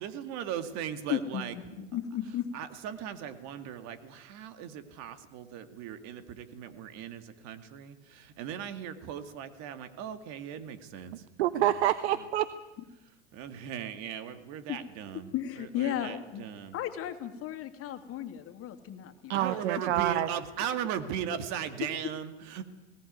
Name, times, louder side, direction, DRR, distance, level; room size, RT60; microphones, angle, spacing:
voice 1, 0.0-1.5 2.5-11.1 13.3-15.3 15.6-16.7 19.3-22.6, right 9 dB, 50° right, 10 dB, 2.3 m, -38 dB
voice 2, 1.1-2.5 14.7-14.8 15.1-16.4 16.7-19.9 21.8-21.9, left 11 dB, 40° left, 8 dB, 2.5 m, -35 dB
voice 3, 11.4-12.5 19.3-20.3, right 13 dB, 70° right, 14 dB, 1.0 m, -27 dB
19.5 x 18.0 x 9.5 m, 1.1 s
hypercardioid pair, 100°, 34 cm